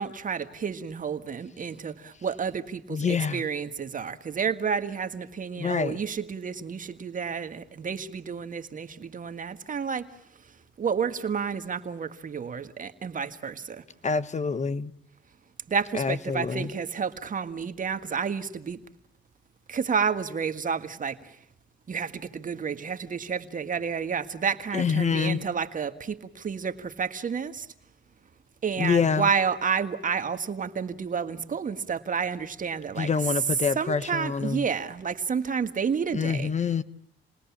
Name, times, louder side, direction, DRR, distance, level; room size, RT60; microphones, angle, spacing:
voice 1, 0.0-10.1 10.8-13.8 15.7-18.8 19.7-21.3 21.9-27.6 28.6-33.1 33.7-36.5, right 6 dB, 40° right, 1.7 m, -30 dB
voice 2, 2.9-3.4 5.6-6.0 14.0-14.9 15.9-16.7 24.7-25.4 28.8-29.3 33.0-34.7 36.1-36.8, left 6 dB, 35° left, 1.2 m, -26 dB
29.5 x 20.5 x 7.3 m
cardioid pair, 90°, 20 cm